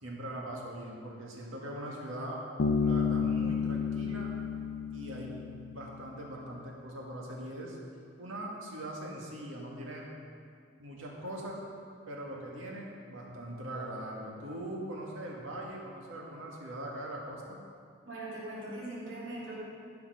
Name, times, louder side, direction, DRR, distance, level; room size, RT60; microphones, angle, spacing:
voice 1, 0.0-2.4 2.8-4.3 4.9-5.4 5.7-7.8 8.2-10.1 10.8-11.6 12.1-17.6, right 1 dB, 85° right, -2 dB, 2.1 m, -41 dB
Bass guitar, 2.6-6.1, left 5 dB, 75° left, 0.6 m, -31 dB
voice 2, 18.0-19.5, right 1 dB, 70° right, -8 dB, 3.3 m, -40 dB
15.0 x 5.9 x 5.5 m, 2.3 s
head